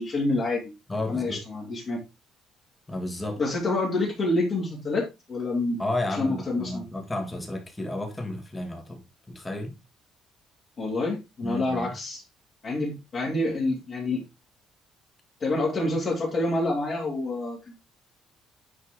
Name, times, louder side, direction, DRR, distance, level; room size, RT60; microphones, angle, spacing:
voice 1, 0.0-0.7 1.1-2.0 3.4-5.8 6.1-6.8 10.8-12.2 12.6-14.2 15.4-17.7, left 2 dB, 35° left, 2.7 m, -27 dB
voice 2, 0.9-1.4 2.9-3.4 5.8-9.0 9.3-9.7 11.4-11.9, left 2 dB, 10° left, 1.9 m, -32 dB
9.6 x 4.3 x 3.7 m
cardioid pair, 165°, 0 cm